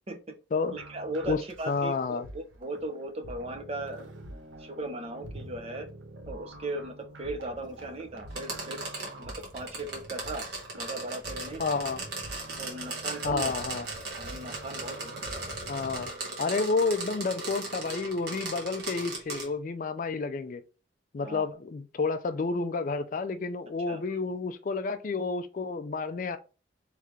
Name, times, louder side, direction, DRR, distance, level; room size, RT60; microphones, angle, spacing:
sound 1, 0.6-16.1, right 1 dB, 85° right, 1.0 m, -46 dB
voice 1, 0.7-4.1 4.6-5.9 6.3-10.4 10.8-11.6 12.6-13.5 14.2-15.4 21.2-21.5 23.9-24.0, right 2 dB, 30° right, 0.6 m, -37 dB
voice 2, 1.7-2.3 11.6-12.0 13.2-13.9 15.7-16.1 16.4-20.6 21.1-26.4, left 4 dB, 40° left, 0.3 m, -30 dB
sound 2, 8.3-19.5, right 3 dB, 55° right, 1.4 m, -37 dB
3.2 x 3.1 x 3.7 m
head